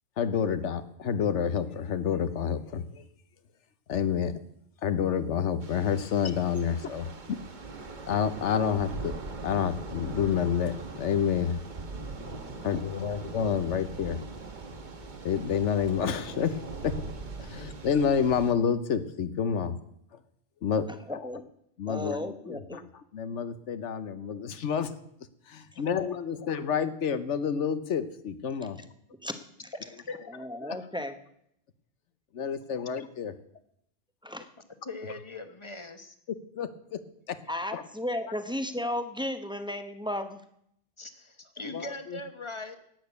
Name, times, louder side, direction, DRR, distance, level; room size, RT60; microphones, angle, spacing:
voice 1, 0.2-3.1 3.9-4.3 4.8-7.4 7.9-9.2 9.4-11.6 12.6-14.3 15.2-16.6 16.8-17.0 17.4-19.8 20.6-21.2 21.8-22.8 23.1-24.9 25.5-28.8 30.6-30.8 32.3-33.3 36.6-37.0 37.3-37.4 37.7-37.8 38.2-38.3 41.6-42.2, left 7 dB, 85° left, 12 dB, 1.2 m, -29 dB
Thunder / Rain, 5.6-18.5, right 3 dB, 45° right, 1.2 m, -41 dB
voice 2, 12.1-12.7 21.1-21.4 21.9-22.8 29.2-29.3 30.3-31.2 34.2-34.5 37.5-40.4, left 1 dB, 5° right, 8 dB, 0.8 m, -34 dB
voice 3, 34.8-36.1 41.0-42.8, left 2 dB, 25° left, 8 dB, 1.2 m, -40 dB
12.0 x 8.8 x 8.1 m, 0.73 s
omnidirectional pair, 1.2 m